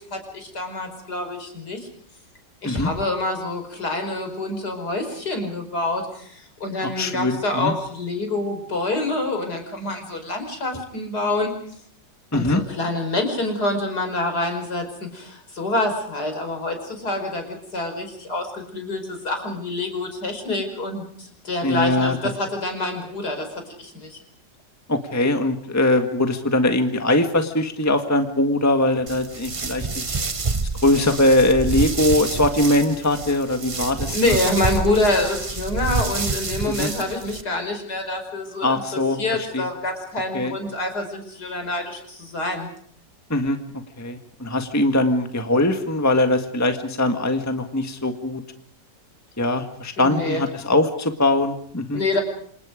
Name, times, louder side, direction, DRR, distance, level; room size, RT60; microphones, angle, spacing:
voice 1, 0.0-1.9 2.6-11.5 12.3-24.2 34.1-42.7 50.0-50.4 51.9-52.2, left 2 dB, 60° left, 5 dB, 5.8 m, -26 dB
voice 2, 6.8-7.7 12.3-12.6 21.6-22.1 24.9-30.0 30.8-34.4 36.8-36.9 38.6-39.2 39.5-39.6 40.3-40.5 43.3-43.6 44.0-48.4 49.4-52.0, left 1 dB, 10° left, 6 dB, 1.6 m, -21 dB
sound 1, 29.1-37.4, right 3 dB, 25° right, 0.7 m, -28 dB
27.5 x 27.0 x 5.1 m, 0.62 s
omnidirectional pair, 1.9 m